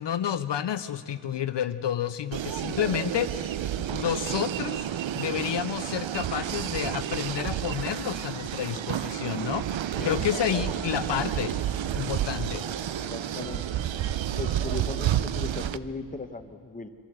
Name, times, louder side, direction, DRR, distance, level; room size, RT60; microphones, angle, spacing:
voice 1, 0.0-11.5 11.9-12.6, left 9 dB, 65° left, 11 dB, 0.6 m, -30 dB
sound 1, 2.3-15.8, right 11 dB, 75° right, 0.7 m, -30 dB
sound 2, 6.4-15.5, left 4 dB, 40° left, 1.3 m, -48 dB
voice 2, 9.9-10.8 13.1-13.8 14.4-16.9, left 3 dB, 20° left, 8 dB, 1.0 m, -38 dB
24.5 x 14.5 x 8.0 m, 2.2 s
wide cardioid pair, 150°, 46 cm